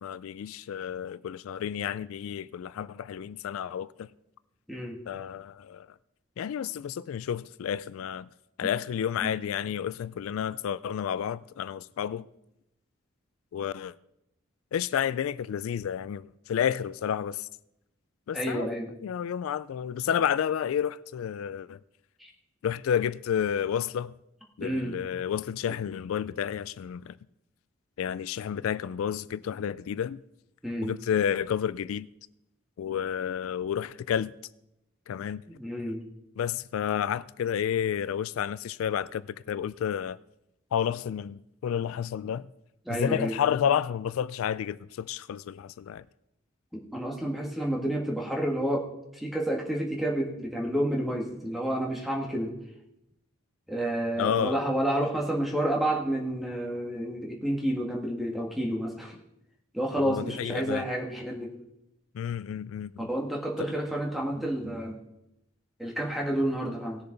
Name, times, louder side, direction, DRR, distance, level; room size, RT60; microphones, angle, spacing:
voice 1, 0.0-4.1 5.1-5.9 6.4-8.3 8.6-12.3 13.5-13.9 14.7-17.5 18.3-18.7 19.0-21.8 22.6-24.1 24.6-27.2 28.0-30.2 30.8-32.1 32.8-34.3 35.1-35.4 36.4-40.2 40.7-42.5 42.9-46.0 54.2-54.6 60.0-60.8 62.1-63.1 63.6-63.7, left 8 dB, 85° left, 0.3 m, -30 dB
voice 2, 18.3-18.9 22.2-22.3 24.6-25.0 30.6-30.9 35.5-36.0 42.8-43.4 46.7-48.8 49.1-52.5 53.7-59.2 59.7-61.5 63.0-65.0 65.8-67.0, right 1 dB, ahead, 1.6 m, -30 dB
18.0 x 6.8 x 3.9 m
head